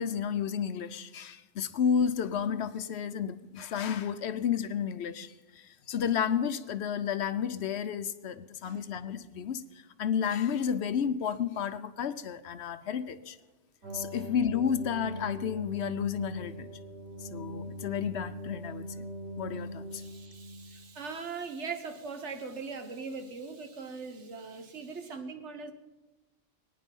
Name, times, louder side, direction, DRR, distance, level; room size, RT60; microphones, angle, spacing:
voice 1, 0.0-5.3 5.9-9.6 10.0-13.4 13.9-16.7 17.2-18.9 19.4-20.0, left 8 dB, 65° left, 0.9 m, -31 dB
sound 1, 13.8-20.9, equal, 85° right, 4.2 m, -41 dB
voice 2, 19.9-25.7, right 4 dB, 70° right, 1.5 m, -40 dB
22.5 x 9.5 x 5.4 m
omnidirectional pair, 1.2 m